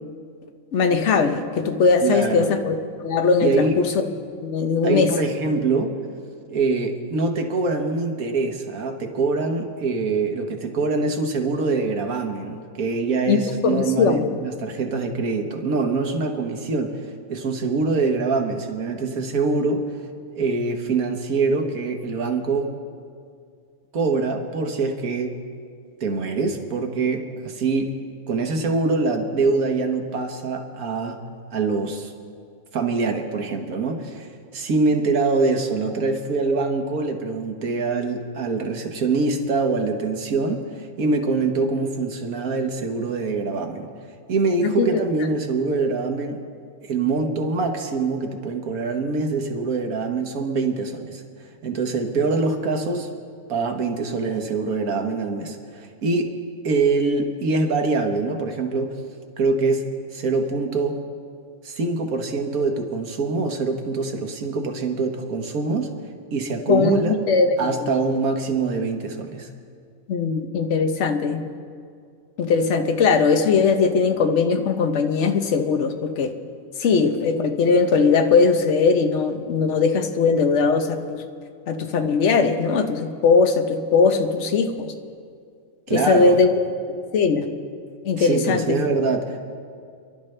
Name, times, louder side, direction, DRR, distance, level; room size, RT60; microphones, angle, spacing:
voice 1, 0.7-2.8 3.0-4.0 4.4-5.1 13.3-14.3 44.6-45.0 66.7-67.9 70.1-71.4 72.4-76.3 76.8-81.2 81.7-84.9 85.9-86.5 87.1-87.5 88.0-88.7, left 5 dB, 60° left, 6 dB, 1.2 m, -20 dB
voice 2, 2.0-2.5 3.4-3.8 4.8-6.0 6.5-19.8 20.3-22.7 23.9-25.4 26.0-28.0 28.3-31.2 31.5-32.1 32.7-43.9 44.3-46.4 46.8-51.2 51.6-53.1 53.5-56.3 56.6-59.0 59.4-61.0 61.6-65.9 66.3-67.1 67.6-69.5 85.9-86.4 88.2-89.5, right 3 dB, 85° right, 4 dB, 1.6 m, -24 dB
28.5 x 12.0 x 3.3 m, 2.2 s
omnidirectional pair, 1.5 m